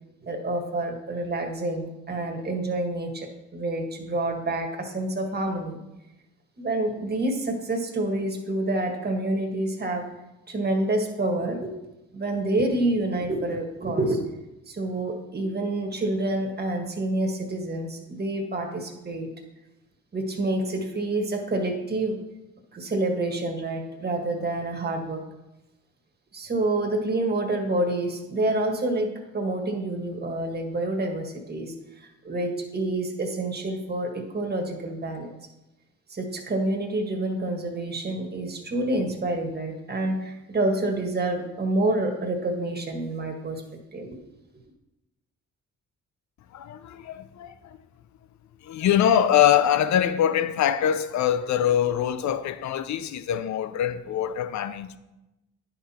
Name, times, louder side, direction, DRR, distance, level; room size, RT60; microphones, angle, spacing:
voice 1, 0.2-5.8 6.6-10.0 10.5-11.7 12.1-14.2 14.7-19.3 20.1-22.1 22.7-25.2 26.3-31.7 32.2-35.3 36.1-43.6 43.9-44.2, right 2 dB, 35° right, 1.7 m, -28 dB
voice 2, 46.5-47.8 48.6-55.0, left 10 dB, 70° left, 0.7 m, -23 dB
10.0 x 5.9 x 4.3 m
cardioid pair, 85°, 30 cm